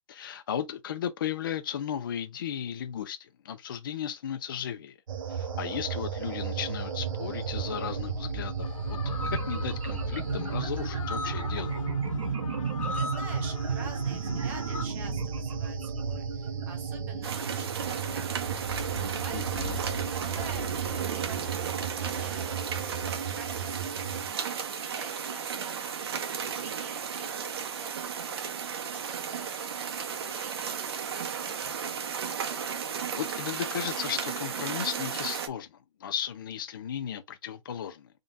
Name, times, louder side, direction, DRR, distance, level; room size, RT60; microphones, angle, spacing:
voice 1, 0.1-4.9 5.3-11.8 19.3-19.8 33.2-38.1, left 9 dB, 40° left, 0.5 m, -35 dB
sound 1, 5.1-24.3, right 5 dB, 85° right, 1.1 m, -33 dB
sound 2, 8.6-14.9, left 4 dB, 75° left, 1.3 m, -40 dB
voice 2, 12.9-18.4 18.8-23.9 24.6-32.4, right 5 dB, 10° right, 0.6 m, -48 dB
sound 3, 17.2-35.5, right 7 dB, 50° right, 0.7 m, -34 dB
3.7 x 2.3 x 3.8 m
hypercardioid pair, 175°, 17 cm